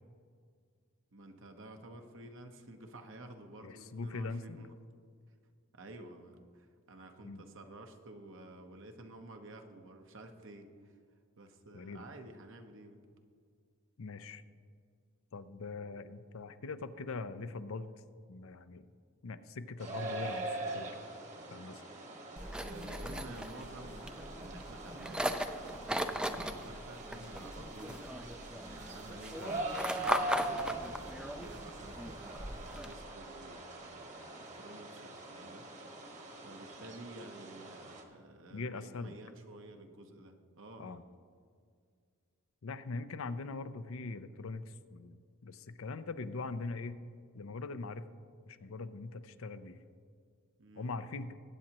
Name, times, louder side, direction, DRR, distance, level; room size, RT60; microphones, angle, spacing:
voice 1, 1.1-4.7 5.7-10.9 11.4-13.0 21.9-22.0 22.5-28.0 28.7-35.7 36.3-41.1 50.6-50.9, right 2 dB, 60° right, 5 dB, 1.0 m, -52 dB
voice 2, 3.6-4.7 7.2-7.4 11.7-12.1 14.0-14.4 15.3-17.9 18.3-18.9 19.2-20.5 20.7-21.0 21.5-21.8 29.4-29.5 38.5-39.2 40.8-41.0 42.6-47.0 47.3-48.1 48.5-49.8 50.8-51.3, left 3 dB, 65° left, 12 dB, 0.5 m, -42 dB
sound 1, 19.8-38.0, right 1 dB, 35° right, 1.3 m, -43 dB
sound 2, 22.4-32.9, right 1 dB, 5° right, 0.4 m, -39 dB
20.5 x 8.6 x 3.0 m, 2.1 s
head